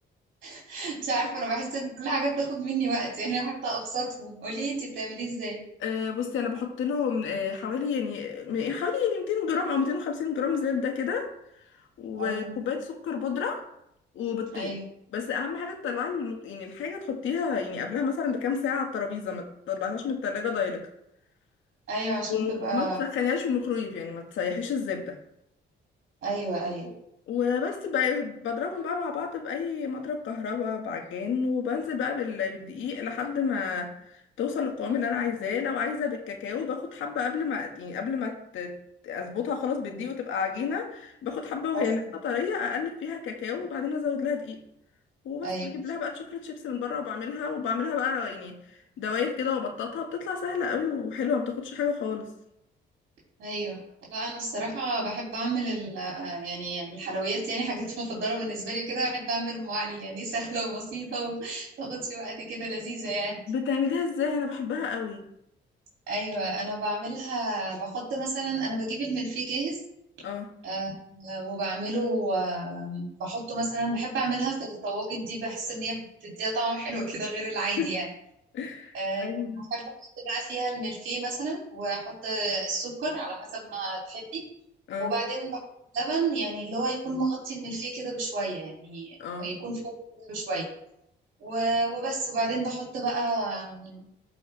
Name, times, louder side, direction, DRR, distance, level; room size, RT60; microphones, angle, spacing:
voice 1, 0.4-5.6 12.2-12.5 14.5-14.8 21.9-23.0 26.2-26.9 41.7-42.0 45.4-45.7 53.4-63.4 66.1-69.8 70.6-78.1 78.9-79.8 80.2-84.4 85.0-85.6 85.9-90.7 91.4-94.1, right 2 dB, 70° right, -4 dB, 3.0 m, -31 dB
voice 2, 5.8-11.3 12.0-13.6 14.1-14.7 15.1-20.9 22.3-25.2 27.3-38.7 39.0-44.6 45.2-52.3 63.5-65.2 70.2-70.5 77.8-77.9 78.5-79.7 84.9-85.2 89.2-89.5, left 6 dB, 80° left, 2 dB, 1.8 m, -30 dB
14.0 x 5.0 x 3.4 m, 0.78 s
cardioid pair, 90°, 20 cm